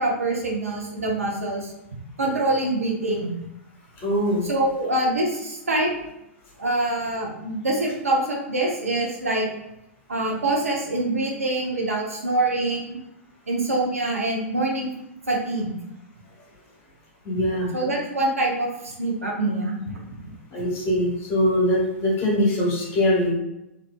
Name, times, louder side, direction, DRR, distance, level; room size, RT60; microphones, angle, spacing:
voice 1, 0.0-1.7 2.2-3.4 4.5-5.9 6.6-9.5 10.1-13.0 13.5-14.9 15.3-15.7 17.7-19.8, right 2 dB, 85° right, -2 dB, 0.7 m, -25 dB
voice 2, 4.0-4.5 17.2-17.7 20.5-23.3, left 1 dB, 40° left, -3 dB, 1.2 m, -22 dB
2.6 x 2.5 x 2.2 m, 0.88 s
figure-of-eight pair, 105°, 8 cm